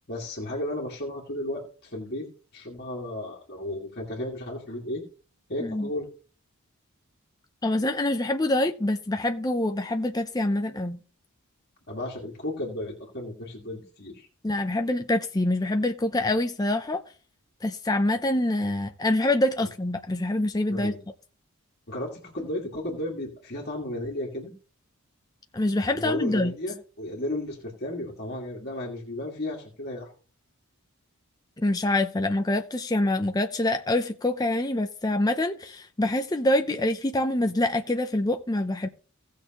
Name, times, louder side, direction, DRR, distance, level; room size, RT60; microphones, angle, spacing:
voice 1, 0.1-2.3 2.5-5.0 5.5-6.1 11.9-14.3 20.7-21.0 21.9-24.5 25.9-30.1, left 1 dB, 45° left, 2.1 m, -34 dB
voice 2, 7.6-11.0 14.4-17.0 17.6-20.9 25.5-26.5 31.6-38.9, left 1 dB, 15° left, 0.5 m, -25 dB
17.0 x 6.5 x 3.0 m
head